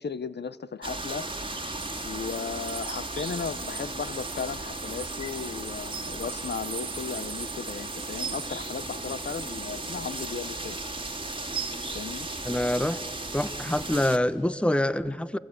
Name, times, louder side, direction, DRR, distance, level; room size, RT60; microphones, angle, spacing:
voice 1, 0.0-1.7 2.0-10.8 11.9-12.3, left 6 dB, 65° left, 16 dB, 0.6 m, -36 dB
sound 1, 0.8-14.2, right 2 dB, 25° right, 2.2 m, -36 dB
sound 2, 1.8-10.3, right 6 dB, 60° right, 0.6 m, -42 dB
voice 2, 12.5-13.0 13.3-15.4, left 1 dB, 5° left, 16 dB, 0.7 m, -26 dB
29.5 x 22.0 x 8.7 m, 2.3 s
wide cardioid pair, 60°, 19 cm